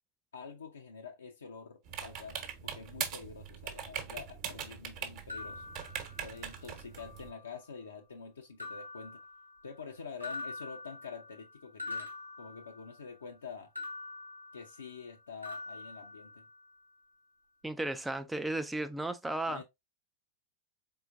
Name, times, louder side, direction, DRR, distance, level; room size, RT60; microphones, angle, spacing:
voice 1, 0.3-5.7 6.2-9.2 9.6-12.1 12.4-13.7 14.5-16.4 19.5-19.6, left 5 dB, 70° left, 0.6 m, -47 dB
sound 1, 1.9-7.3, right 8 dB, 40° right, 1.0 m, -41 dB
sound 2, 5.3-6.6 7.0-7.7 8.6-9.9 10.2-13.2 13.8-15.1 15.4-16.8, left 2 dB, 90° right, 0.9 m, -45 dB
voice 2, 17.6-19.6, right 2 dB, 5° right, 0.3 m, -34 dB
4.3 x 3.8 x 2.5 m
figure-of-eight pair, 90°, 0 cm